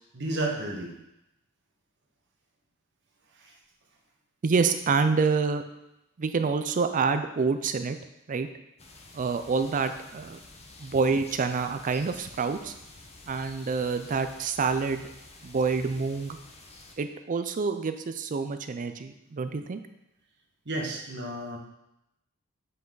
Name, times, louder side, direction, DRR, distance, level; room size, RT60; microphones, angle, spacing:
voice 1, 0.1-0.9 3.4-3.5 20.6-21.6, right 2 dB, 55° right, -1 dB, 1.5 m, -32 dB
voice 2, 4.4-5.6 6.2-8.0 8.3-8.5 9.1-10.4 10.8-12.7 13.3-15.1 15.4-16.4 17.0-19.8, right 4 dB, 35° right, 9 dB, 0.4 m, -27 dB
sound 1, 8.8-17.0, left 2 dB, 30° left, 0.8 m, -50 dB
7.7 x 5.5 x 3.8 m, 0.87 s
head